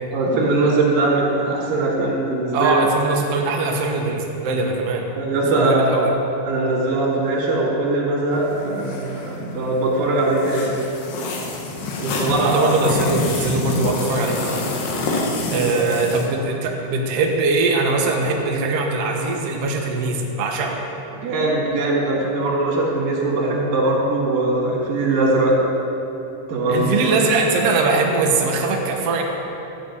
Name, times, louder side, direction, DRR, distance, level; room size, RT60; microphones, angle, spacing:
voice 1, 0.1-2.7 5.2-5.9 6.4-10.7 12.0-12.6 15.6-15.9 21.1-25.5 26.5-26.9, right 2 dB, 85° right, -3 dB, 3.9 m, -21 dB
voice 2, 2.5-5.1 5.5-6.1 12.4-14.8 15.5-20.8 26.7-29.2, right 3 dB, 60° right, 0 dB, 1.9 m, -21 dB
sound 1, 8.3-16.3, left 2 dB, 85° left, 3.0 m, -27 dB
14.5 x 5.2 x 8.6 m, 3.0 s
omnidirectional pair, 3.9 m